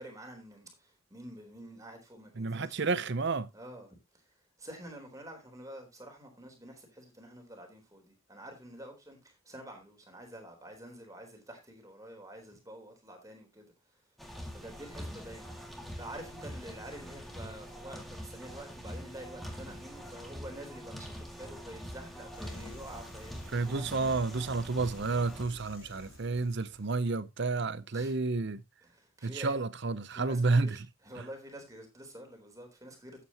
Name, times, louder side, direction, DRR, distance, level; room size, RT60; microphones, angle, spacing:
voice 1, 0.0-2.9 3.5-14.0 14.5-15.5 16.0-23.9 27.9-28.1 28.8-29.6 30.1-33.2, right 1 dB, 15° right, 3.7 m, -48 dB
voice 2, 2.4-3.5 23.5-28.6 29.2-30.9, right 3 dB, 55° right, 0.7 m, -30 dB
sound 1, 14.2-25.4, equal, ahead, 2.1 m, -44 dB
sound 2, 22.3-27.2, left 1 dB, 70° left, 4.0 m, -52 dB
13.0 x 8.6 x 2.9 m
head